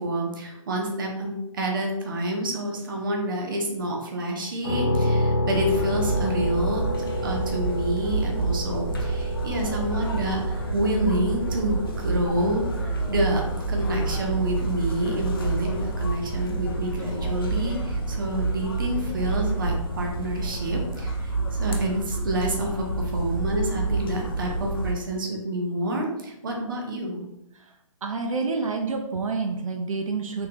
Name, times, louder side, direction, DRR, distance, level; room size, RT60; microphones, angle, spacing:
voice 1, 0.0-6.9 7.2-27.3, right 1 dB, 40° right, 0 dB, 0.7 m, -28 dB
sound 1, 4.6-18.4, left 1 dB, 10° left, 0.8 m, -31 dB
sound 2, 5.5-24.9, right 3 dB, 45° left, 0.5 m, -28 dB
voice 2, 28.0-30.5, right 4 dB, 80° right, 3 dB, 0.6 m, -28 dB
3.7 x 2.8 x 2.8 m, 0.88 s
hypercardioid pair, 180°, 17 cm